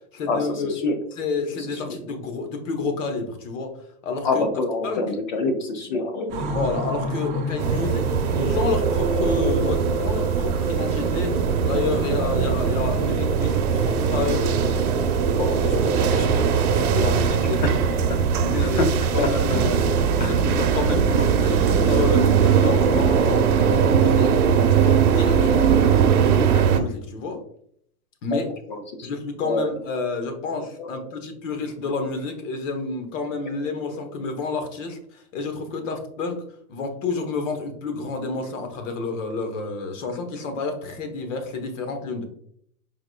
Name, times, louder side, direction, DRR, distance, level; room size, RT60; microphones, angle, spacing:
voice 1, 0.1-0.8 1.1-3.7 4.0-4.5 4.8-5.0 6.5-11.3 11.6-14.9 15.2-17.8 18.4-24.4 24.7-27.4 28.2-28.5 29.0-36.4 36.7-42.2, left 4 dB, 55° left, 6 dB, 1.2 m, -29 dB
voice 2, 4.2-6.5 18.8-18.9 19.2-19.7 20.2-20.3 28.3-28.4 28.7-28.8 29.4-29.7 30.8-30.9, left 3 dB, 35° left, 6 dB, 0.4 m, -25 dB
sound 1, 6.3-16.4 16.8-17.7 18.0-18.1 18.5-19.3 19.6-19.7 20.0-22.8, equal, 15° right, 0.7 m, -35 dB
sound 2, 7.6-26.8, right 7 dB, 70° right, 0.8 m, -20 dB
4.8 x 3.7 x 2.3 m, 0.66 s
supercardioid pair, 160°, 45 cm